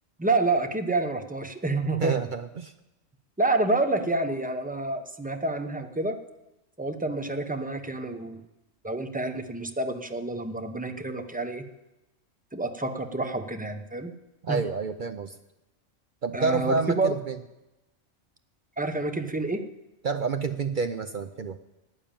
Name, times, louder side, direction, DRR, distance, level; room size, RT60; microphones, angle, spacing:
voice 1, 0.2-2.2 3.4-6.2 6.8-8.4 8.8-11.6 12.5-14.1 14.5-14.6 16.3-17.1 18.8-19.7, right 2 dB, 10° right, 7 dB, 0.7 m, -28 dB
voice 2, 2.0-2.7 14.4-15.4 16.2-17.4 20.0-21.6, right 5 dB, 55° right, 9 dB, 0.6 m, -29 dB
12.0 x 9.1 x 8.9 m, 0.96 s
omnidirectional pair, 1.4 m